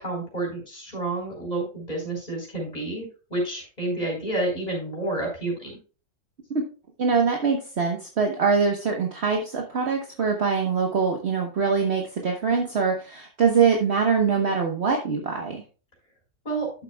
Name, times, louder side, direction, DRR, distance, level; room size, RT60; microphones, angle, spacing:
voice 1, 0.0-5.7 16.4-16.7, right 2 dB, 25° left, -1 dB, 4.6 m, -29 dB
voice 2, 7.0-15.6, right 5 dB, 50° right, 2 dB, 1.4 m, -23 dB
12.0 x 7.4 x 2.3 m, 0.35 s
omnidirectional pair, 1.6 m